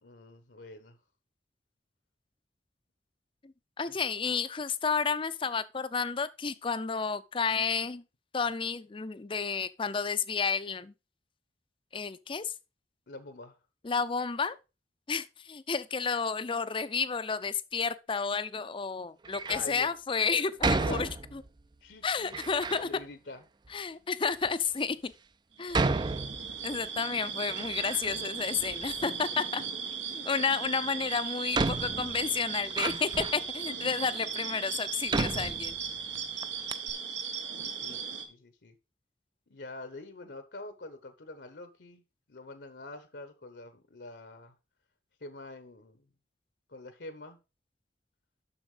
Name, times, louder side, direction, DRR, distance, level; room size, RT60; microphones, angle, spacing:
voice 1, 0.0-1.0 3.9-4.0 4.2-4.4 13.1-13.6 19.5-19.9 20.8-21.1 21.8-22.4 22.8-23.4 37.7-38.7 39.5-42.0 42.3-44.5 45.2-46.1 46.7-47.4, left 2 dB, 75° left, 1.1 m, -45 dB
voice 2, 3.4-8.0 8.3-10.9 11.9-12.5 13.8-14.6 15.1-21.4 22.0-22.9 23.7-25.1 25.6-26.0 26.6-29.6 30.1-35.8, left 5 dB, 30° left, 0.5 m, -31 dB
Door, 19.2-19.7 20.6-21.6 22.3-22.9 23.7-23.8 24.4-24.5 25.7-26.9 27.2-28.3 28.6-29.4 30.7-30.8 31.5-33.5 34.2-34.3 35.1-36.2 36.4-36.5 36.7-36.9, right 3 dB, 25° right, 0.4 m, -32 dB
sound 1, 25.6-38.3, right 6 dB, 85° right, 1.5 m, -37 dB
7.1 x 6.3 x 4.9 m
head